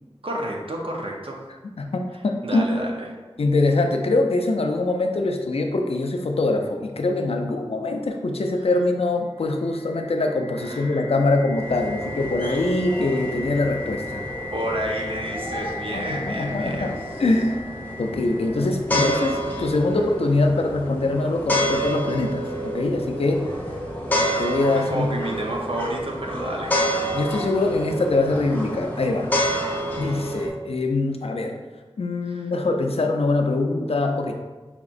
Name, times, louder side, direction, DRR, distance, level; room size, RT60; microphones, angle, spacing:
voice 1, 0.2-1.4 2.4-3.1 8.6-8.7 10.6-11.1 14.5-16.9 18.9-19.3 24.7-26.7 32.2-32.5, right 1 dB, 60° right, 0 dB, 0.7 m, -30 dB
voice 2, 1.8-2.6 3.4-14.2 15.9-17.6 18.0-23.5 24.4-25.1 27.1-29.6 30.0-31.6 32.0-34.3, left 2 dB, 70° left, 4 dB, 0.4 m, -23 dB
sound 1, 9.4-19.2, left 3 dB, 25° right, 1.0 m, -37 dB
sound 2, 11.5-30.5, equal, 15° left, 0.7 m, -29 dB
4.9 x 2.8 x 2.5 m, 1.3 s
wide cardioid pair, 55°, 10 cm